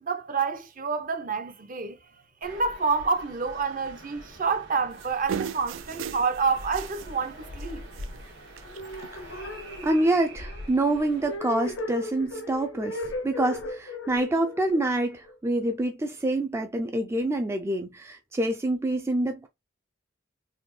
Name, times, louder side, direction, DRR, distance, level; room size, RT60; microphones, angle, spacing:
voice 1, 0.0-2.0 2.4-7.8, right 5 dB, 45° right, 0.7 m, -28 dB
sound 1, 2.4-11.4, equal, 70° right, 1.9 m, -44 dB
sound 2, 5.0-7.1 7.4-7.6 7.9-8.3 8.6-9.1 9.9-10.0, right 8 dB, 85° right, 0.4 m, -36 dB
sound 3, 8.7-15.8, left 2 dB, 75° left, 0.6 m, -37 dB
voice 2, 9.8-19.5, right 1 dB, 15° right, 0.3 m, -26 dB
4.1 x 2.8 x 3.1 m
head